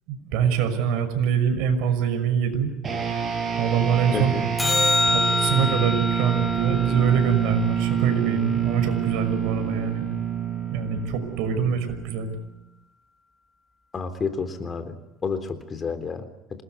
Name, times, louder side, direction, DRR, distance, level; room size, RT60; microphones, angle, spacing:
voice 1, 0.1-2.7 3.6-4.3 5.1-10.0 10.7-12.3, right 7 dB, 75° right, 7 dB, 6.1 m, -24 dB
sound 1, 2.8-12.5, right 8 dB, 30° right, 7.3 m, -27 dB
voice 2, 4.1-4.5 13.9-14.9 15.2-16.2, left 5 dB, 25° left, 9 dB, 3.6 m, -29 dB
sound 2, 4.6-9.1 15.6-15.7, left 3 dB, 10° left, 2.2 m, -27 dB
27.0 x 20.5 x 9.6 m, 0.89 s
cardioid pair, 130°, 0 cm